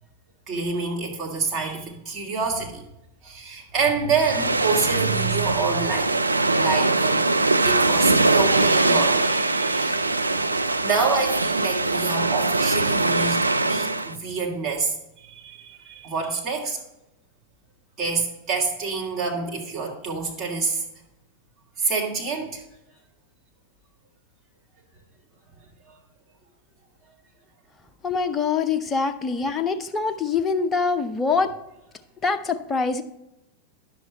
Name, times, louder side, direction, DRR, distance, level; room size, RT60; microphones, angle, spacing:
voice 1, 0.5-2.8 3.2-6.2 6.5-7.3 7.6-10.1 10.8-13.4 13.7-16.8 18.0-20.8 21.8-22.6, right 4 dB, 30° right, -3 dB, 2.4 m, -27 dB
sound 1, 4.2-14.1, right 2 dB, 80° right, 0.4 m, -22 dB
voice 2, 28.0-31.5 32.2-33.0, left 5 dB, 20° left, 8 dB, 0.7 m, -24 dB
10.5 x 7.1 x 3.1 m, 0.88 s
figure-of-eight pair, 90°, 0 cm